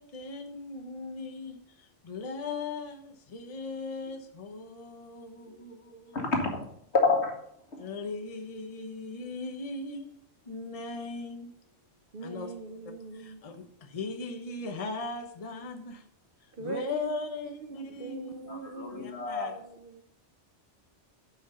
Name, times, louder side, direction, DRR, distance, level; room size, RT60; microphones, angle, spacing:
voice 1, 0.0-6.3 7.8-10.1 10.5-11.5 12.2-12.5 13.1-16.0 16.4-19.6, left 3 dB, 35° left, 0.9 m, -39 dB
voice 2, 6.1-6.7 6.9-7.3 7.7-7.8 18.5-19.5, left 3 dB, 65° left, 2.1 m, -28 dB
voice 3, 12.1-13.4 16.5-20.0, right 3 dB, 50° right, 0.9 m, -42 dB
8.5 x 5.7 x 5.7 m
omnidirectional pair, 1.2 m